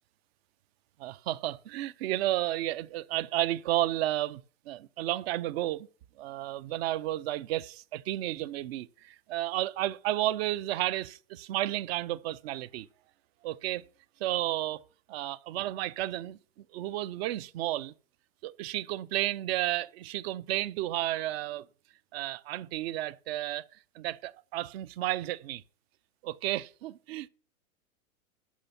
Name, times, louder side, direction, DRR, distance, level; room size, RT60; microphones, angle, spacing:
voice 1, 1.0-5.9 6.2-12.9 13.4-13.8 14.2-14.8 15.1-16.4 16.7-17.9 18.4-21.7 22.1-23.7 23.9-25.6 26.2-27.3, right 15 dB, 45° right, 0.6 m, -32 dB
12.5 x 5.5 x 5.8 m
hypercardioid pair, 135°, 43 cm